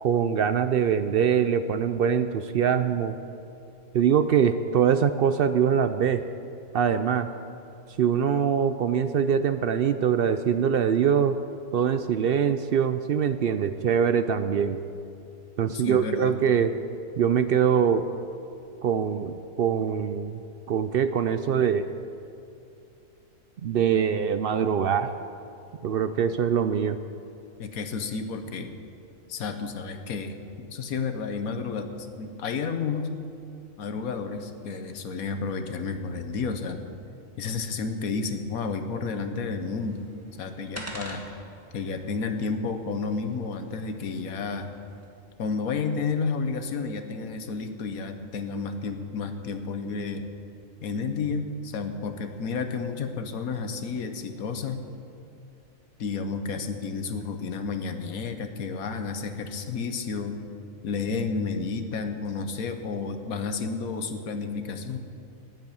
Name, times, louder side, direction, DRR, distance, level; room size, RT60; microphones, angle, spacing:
voice 1, 0.0-3.2 3.9-6.2 6.7-7.3 8.0-11.4 11.7-14.8 15.6-16.7 17.2-18.1 18.8-20.4 20.7-21.9 23.6-25.1 25.8-27.0, right 8 dB, 70° right, 10 dB, 0.5 m, -23 dB
voice 2, 15.7-16.4 27.6-28.8 29.3-33.1 33.8-36.8 37.4-40.0 40.4-41.3 41.7-44.7 45.4-50.3 50.8-54.8 56.0-60.4 60.8-65.0, left 4 dB, 90° left, 8 dB, 1.4 m, -31 dB
sound 1, 39.6-45.1, right 1 dB, 10° right, 1.6 m, -46 dB
11.0 x 10.0 x 8.7 m, 2.6 s
omnidirectional pair, 1.4 m